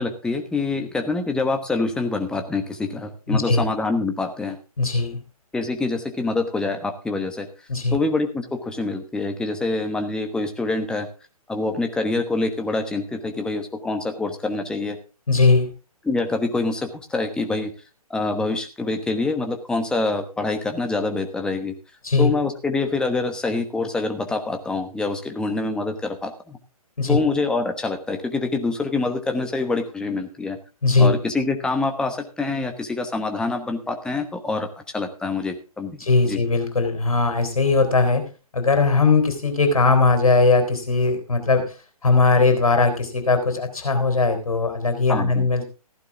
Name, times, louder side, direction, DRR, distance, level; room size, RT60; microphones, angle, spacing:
voice 1, 0.0-4.6 5.5-7.5 7.9-11.1 11.5-15.0 16.0-17.7 18.1-21.7 22.2-26.6 27.1-30.6 31.0-36.0 36.2-36.4 45.1-45.5, left 3 dB, 5° left, 5 dB, 1.2 m, -25 dB
voice 2, 3.3-3.6 4.8-5.2 7.7-8.0 15.3-15.7 22.0-22.3 27.0-27.2 30.8-31.2 36.0-38.3 38.5-41.7 42.0-45.7, left 3 dB, 65° left, 7 dB, 3.9 m, -19 dB
15.0 x 11.0 x 3.5 m, 0.32 s
figure-of-eight pair, 130°, 19 cm